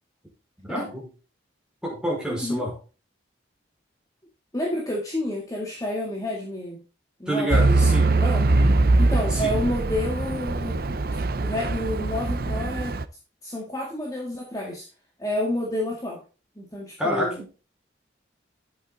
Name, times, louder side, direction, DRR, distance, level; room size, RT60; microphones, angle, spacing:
voice 1, 0.6-1.1 1.8-2.7 7.3-8.7 9.3-9.6 17.0-17.3, equal, 5° right, -4 dB, 5.2 m, -28 dB
voice 2, 2.3-2.7 4.5-6.8 7.2-7.9 8.2-8.4 9.0-13.0 13.4-14.9 15.2-16.2 16.6-17.4, left 1 dB, 20° left, -2 dB, 2.0 m, -30 dB
Truck / Idling, 7.5-13.0, right 2 dB, 50° right, 0.6 m, -22 dB
11.5 x 8.0 x 3.9 m, 0.34 s
head